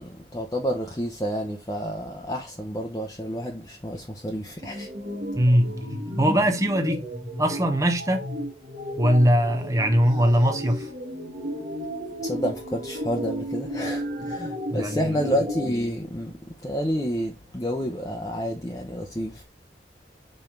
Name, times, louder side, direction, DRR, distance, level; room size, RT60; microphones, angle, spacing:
voice 1, 0.0-4.9 12.2-16.3 16.6-19.4, equal, 20° left, 0.8 m, -29 dB
sound 1, 4.6-15.7, equal, 40° right, 1.5 m, -33 dB
voice 2, 5.3-5.7 6.2-7.0 7.4-8.3 9.0-10.9 14.7-15.3, equal, 20° right, 0.8 m, -21 dB
5.4 x 4.5 x 4.5 m
head